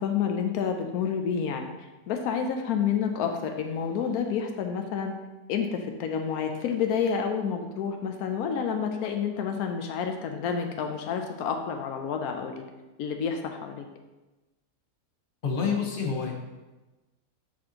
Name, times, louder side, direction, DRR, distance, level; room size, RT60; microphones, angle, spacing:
voice 1, 0.0-1.7 2.1-5.2 5.5-12.7 13.0-13.9, left 7 dB, 85° left, 4 dB, 1.1 m, -29 dB
voice 2, 15.4-16.3, left 5 dB, 40° left, 0 dB, 1.1 m, -27 dB
9.8 x 4.3 x 2.8 m, 1.1 s
omnidirectional pair, 1.6 m